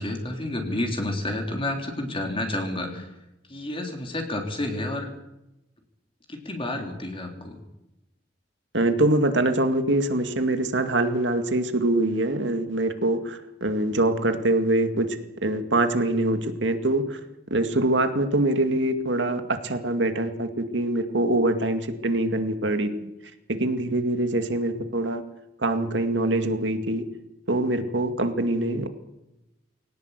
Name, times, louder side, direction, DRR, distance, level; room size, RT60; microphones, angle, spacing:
voice 1, 0.0-3.1 3.5-5.1 6.3-7.6, left 1 dB, 30° left, 2 dB, 3.7 m, -30 dB
voice 2, 8.7-15.2 15.4-17.2 17.5-23.1 23.5-25.2 25.6-27.0 27.5-28.9, right 1 dB, 80° right, 7 dB, 2.2 m, -24 dB
21.5 x 18.0 x 8.3 m, 0.91 s
head